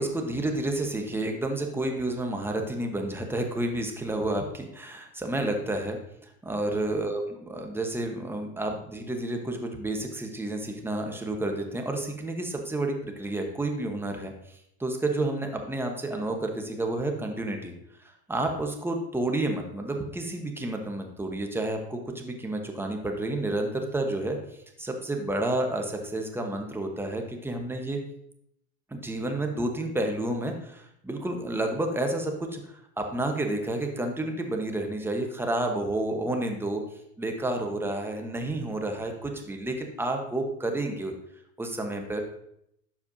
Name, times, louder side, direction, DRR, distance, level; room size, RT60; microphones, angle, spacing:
voice 1, 0.0-17.7 18.0-24.4 24.8-28.0 28.9-36.8 37.2-41.1 41.6-42.2, right 2 dB, 5° right, 3 dB, 1.1 m, -30 dB
11.5 x 4.8 x 2.7 m, 0.75 s
hypercardioid pair, 85°, 43 cm